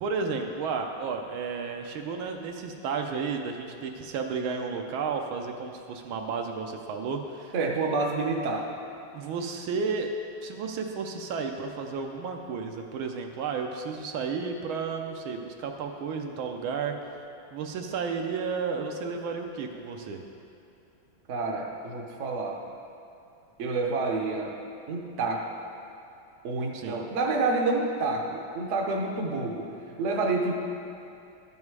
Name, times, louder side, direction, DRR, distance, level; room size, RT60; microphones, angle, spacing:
voice 1, 0.0-7.5 9.1-10.1 10.4-17.0 17.5-20.2 26.7-27.0, right 5 dB, 75° right, 3 dB, 1.5 m, -32 dB
voice 2, 7.5-8.7 21.3-22.6 23.6-24.5 24.9-25.5 26.4-29.7 30.0-30.5, right 3 dB, 55° right, 0 dB, 0.9 m, -28 dB
11.5 x 5.4 x 4.7 m, 2.7 s
omnidirectional pair, 2.3 m